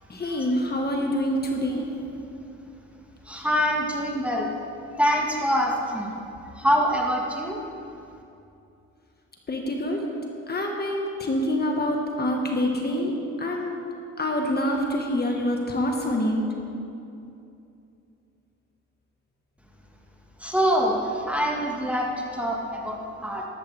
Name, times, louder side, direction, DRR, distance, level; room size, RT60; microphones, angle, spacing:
voice 1, 0.1-1.8 9.5-10.0 10.5-13.8 14.2-16.4, left 1 dB, 35° left, 1 dB, 1.5 m, -26 dB
voice 2, 3.2-4.5 5.0-6.2 6.5-7.6 20.4-23.4, equal, 5° right, -1 dB, 1.6 m, -25 dB
13.5 x 12.5 x 3.4 m, 2.7 s
cardioid pair, 90°, 30 cm